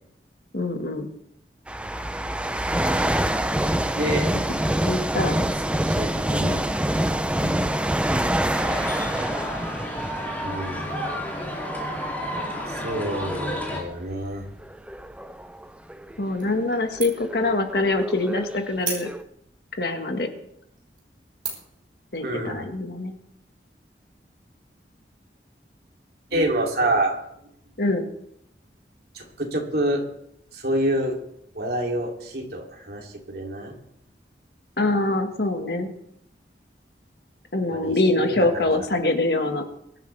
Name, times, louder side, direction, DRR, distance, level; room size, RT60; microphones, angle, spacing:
voice 1, 0.5-1.1 4.8-5.5 7.4-7.6 16.2-19.1 19.8-20.3 22.1-23.1 27.8-28.0 34.8-35.9 37.5-39.6, left 2 dB, 65° left, 5 dB, 1.7 m, -24 dB
sound 1, 1.7-11.6 12.3-12.5 13.2-16.3 17.0-18.7 19.1-19.2, right 1 dB, 5° right, 0.5 m, -26 dB
voice 2, 3.9-4.3 5.7-6.6 10.4-10.9 12.8-14.5 22.2-22.6 26.3-27.2 29.1-30.0 30.5-31.2 31.5-33.7 37.7-38.7, right 1 dB, 60° right, 0 dB, 3.0 m, -27 dB
sound 2, 8.5-13.8, equal, 10° left, 2.8 m, -31 dB
sound 3, 16.4-16.8 17.0-17.4 17.8-17.9 18.8-19.5 20.1-20.2 20.8-21.0 21.4-21.8, right 5 dB, 30° right, 3.8 m, -33 dB
23.0 x 11.5 x 3.4 m, 0.75 s
head